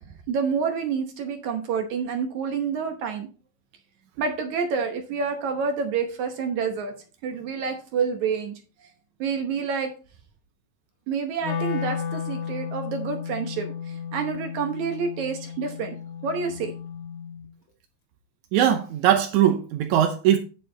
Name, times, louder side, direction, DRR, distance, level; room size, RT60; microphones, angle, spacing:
voice 1, 0.3-3.3 4.2-6.9 7.2-8.5 9.2-9.9 11.1-16.0 16.2-16.7, right 5 dB, 65° right, 2.0 m, -28 dB
Wind instrument woodwind instrument, 11.4-17.5, left 7 dB, 50° left, 2.6 m, -33 dB
voice 2, 18.5-20.4, right 10 dB, 80° right, 1.7 m, -20 dB
9.9 x 6.6 x 3.9 m
omnidirectional pair, 4.3 m